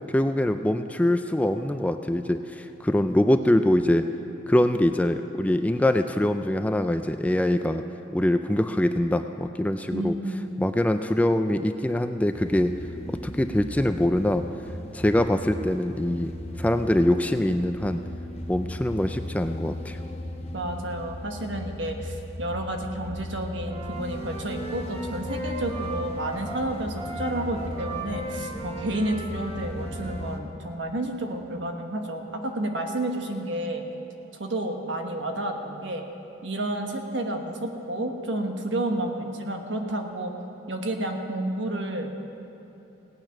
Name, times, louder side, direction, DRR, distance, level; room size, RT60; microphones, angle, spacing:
voice 1, 0.0-4.0 4.5-7.8 8.1-10.2 10.6-12.7 13.1-14.4 14.9-16.3 16.6-18.0 18.5-20.0, left 1 dB, 10° left, 8 dB, 0.3 m, -23 dB
voice 2, 9.9-10.5 20.5-33.8 34.4-36.0 36.4-40.3 40.7-42.1, right 1 dB, 75° right, 3 dB, 1.3 m, -30 dB
sound 1, 12.3-30.4, left 1 dB, 35° left, 0.9 m, -37 dB
Wind instrument woodwind instrument, 23.6-30.3, right 2 dB, 25° right, 1.1 m, -38 dB
17.5 x 9.0 x 5.9 m, 3.0 s
head